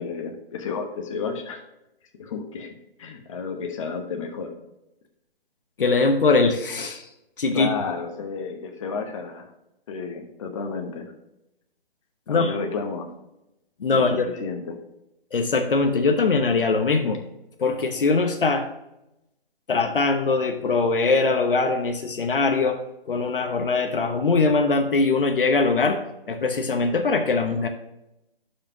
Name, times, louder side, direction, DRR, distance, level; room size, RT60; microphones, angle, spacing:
voice 1, 0.0-1.6 2.2-2.7 3.0-4.5 7.5-9.5 9.9-11.1 12.3-13.1 13.9-14.8, left 5 dB, 30° left, 3 dB, 1.2 m, -31 dB
voice 2, 5.8-7.1 7.4-7.7 12.3-12.5 13.8-14.2 15.3-17.2 17.6-18.7 19.7-22.8 23.1-26.0 26.3-27.7, left 3 dB, 60° left, 5 dB, 1.0 m, -21 dB
11.5 x 5.0 x 2.9 m, 0.89 s
figure-of-eight pair, 150°, 30 cm